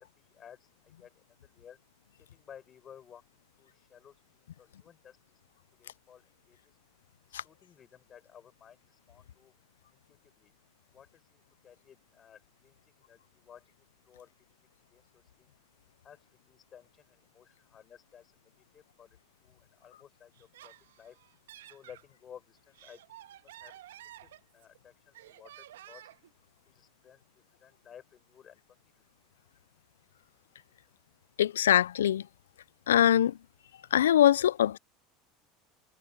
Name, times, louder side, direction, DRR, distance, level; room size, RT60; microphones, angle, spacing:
voice 1, 0.0-1.8 2.3-6.7 7.3-9.5 9.9-10.5 10.9-14.6 14.9-15.5 16.0-21.2 21.7-23.0 23.3-23.8 24.2-26.1 26.7-29.0, left 8 dB, 35° left, 6.0 m, -56 dB
Laughter, 20.3-22.0 22.6-24.8 25.1-26.3, right 13 dB, 80° right, 1.6 m, -52 dB
voice 2, 31.4-32.2 32.9-33.3 33.9-34.8, left 10 dB, 85° left, 0.4 m, -23 dB
hypercardioid pair, 80°, 0 cm